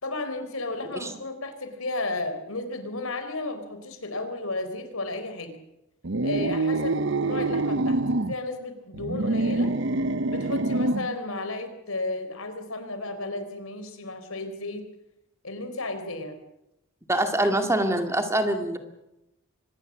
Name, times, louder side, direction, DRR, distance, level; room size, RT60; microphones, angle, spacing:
voice 1, 0.0-5.5 6.2-9.7 10.3-14.8 15.4-16.4, left 2 dB, 80° left, 9 dB, 3.9 m, -33 dB
sound 1, 6.0-8.3 8.9-11.1, right 2 dB, 60° right, 0.8 m, -26 dB
voice 2, 17.1-18.8, right 1 dB, 15° right, 6 dB, 2.1 m, -24 dB
24.5 x 20.0 x 7.4 m, 0.88 s
head